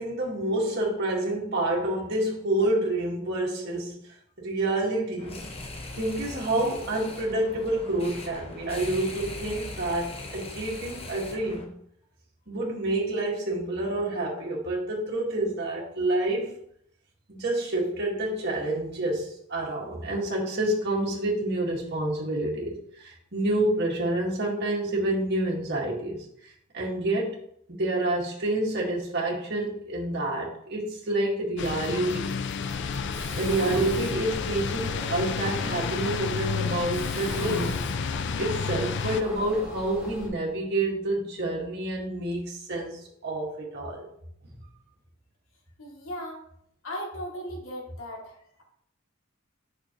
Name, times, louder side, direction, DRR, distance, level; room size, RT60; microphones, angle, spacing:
voice 1, 0.0-4.0 4.4-5.4 5.9-11.7 12.5-16.5 17.3-27.3 27.7-32.3 33.3-37.8 38.4-44.0, right 1 dB, 55° right, -3 dB, 2.1 m, -28 dB
sound 1, 5.2-11.7, left 2 dB, 30° left, 1.2 m, -40 dB
sound 2, 31.6-39.2, left 6 dB, 55° left, 0.4 m, -31 dB
Mechanisms, 32.6-40.3, equal, 5° right, 3.1 m, -38 dB
voice 2, 45.8-46.4 46.8-48.6, equal, 75° left, -3 dB, 2.8 m, -37 dB
8.5 x 6.2 x 3.1 m, 0.71 s
head